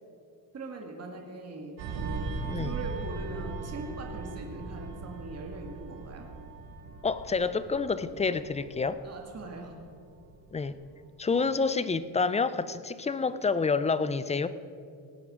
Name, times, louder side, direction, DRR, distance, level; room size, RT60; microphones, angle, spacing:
voice 1, 0.5-6.3 9.0-9.8, right 2 dB, 35° right, 2 dB, 1.9 m, -41 dB
sound 1, 1.8-10.8 11.2-11.4, right 3 dB, 85° right, 1.7 m, -39 dB
voice 2, 7.0-9.0 10.5-10.8 11.2-14.5, left 4 dB, 15° left, 14 dB, 0.3 m, -28 dB
18.5 x 9.6 x 4.9 m, 2.4 s
cardioid pair, 120°, 44 cm